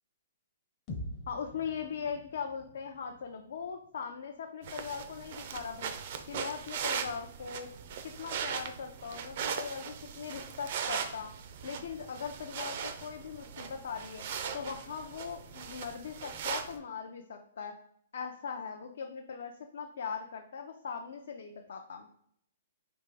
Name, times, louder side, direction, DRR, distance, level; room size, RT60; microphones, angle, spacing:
sound 1, 0.9-4.8, left 1 dB, 20° left, 0.6 m, -46 dB
voice 1, 1.3-5.9 6.3-7.7 8.0-11.3 11.6-14.2 14.5-17.7 18.1-22.1, left 6 dB, 65° left, 3 dB, 0.5 m, -40 dB
sound 2, 4.6-16.8, right 7 dB, 40° right, 0.4 m, -39 dB
3.5 x 2.9 x 4.7 m, 0.68 s
hypercardioid pair, 175°, 0 cm